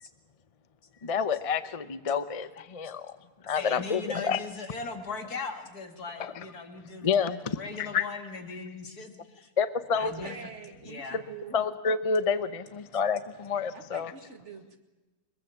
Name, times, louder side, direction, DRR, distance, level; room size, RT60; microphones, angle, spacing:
voice 1, 1.0-3.1 3.4-4.4 6.2-6.3 7.0-8.1 9.6-10.1 11.5-14.1, left 6 dB, 30° left, 13 dB, 0.7 m, -28 dB
voice 2, 3.4-9.5 10.0-10.5 10.8-11.2, left 4 dB, 80° left, 6 dB, 2.6 m, -39 dB
voice 3, 9.9-11.6 13.7-14.8, right 5 dB, 50° right, 5 dB, 2.3 m, -45 dB
22.0 x 22.0 x 7.3 m, 1.1 s
omnidirectional pair, 1.6 m